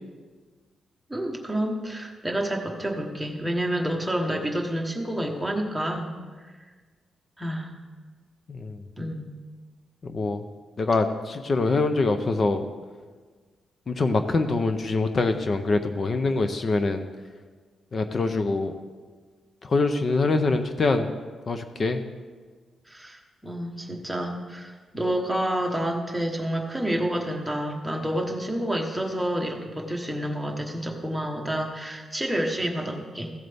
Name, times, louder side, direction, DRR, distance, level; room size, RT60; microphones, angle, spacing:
voice 1, 1.1-6.1 7.4-7.7 9.0-9.3 22.9-33.3, right 1 dB, 5° right, 0 dB, 1.1 m, -29 dB
voice 2, 8.5-8.8 10.0-10.4 10.8-12.7 13.9-17.0 17.9-18.7 19.6-21.1 21.5-22.0, left 3 dB, 30° left, 8 dB, 0.5 m, -24 dB
15.0 x 8.0 x 3.4 m, 1.4 s
wide cardioid pair, 165°, 0 cm